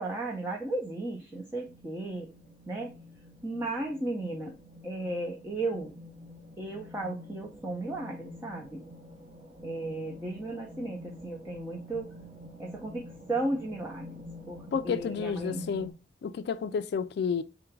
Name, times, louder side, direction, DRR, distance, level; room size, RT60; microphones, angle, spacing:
voice 1, 0.0-2.3 2.7-2.9 3.4-4.5 4.8-6.0 6.6-8.9 9.6-12.1 12.6-15.7, right 2 dB, 10° right, 0.6 m, -35 dB
sound 1, 1.6-15.9, left 1 dB, 40° right, 1.0 m, -48 dB
voice 2, 14.7-15.9 16.2-17.4, left 6 dB, 60° left, 0.3 m, -31 dB
3.8 x 2.5 x 4.5 m
head